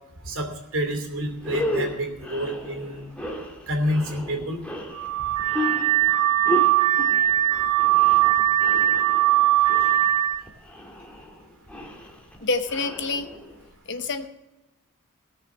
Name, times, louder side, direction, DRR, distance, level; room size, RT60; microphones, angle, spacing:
voice 1, 0.2-3.0 3.7-4.6 7.8-8.0 9.8-9.9, equal, 65° right, 3 dB, 2.8 m, -28 dB
sound 1, 0.9-1.0 1.3-13.7, left 1 dB, 5° left, 1.6 m, -34 dB
Car / Alarm, 4.9-10.4, right 14 dB, 85° right, 0.4 m, -20 dB
voice 2, 12.4-13.3 13.9-14.3, left 3 dB, 55° left, 8 dB, 1.0 m, -27 dB
17.0 x 6.6 x 7.1 m, 1.0 s
head